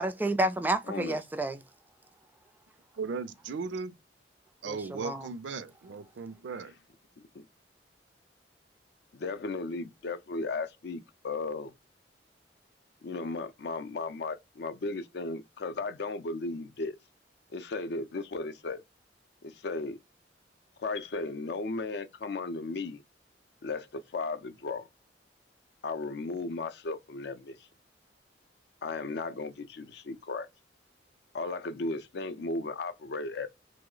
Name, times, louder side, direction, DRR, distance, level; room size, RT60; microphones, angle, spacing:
voice 1, 0.0-1.6 4.7-5.3, right 1 dB, 10° right, 0.3 m, -30 dB
voice 2, 0.9-1.2 7.2-7.4 9.1-11.7 13.0-17.0 17.5-18.8 19.4-20.0 20.8-23.0 23.6-24.9 25.8-27.6 28.8-30.5 31.3-33.5, left 3 dB, 65° left, 0.5 m, -35 dB
voice 3, 2.9-4.0 4.6-6.7, right 4 dB, 85° right, 0.4 m, -37 dB
3.1 x 2.0 x 3.7 m
head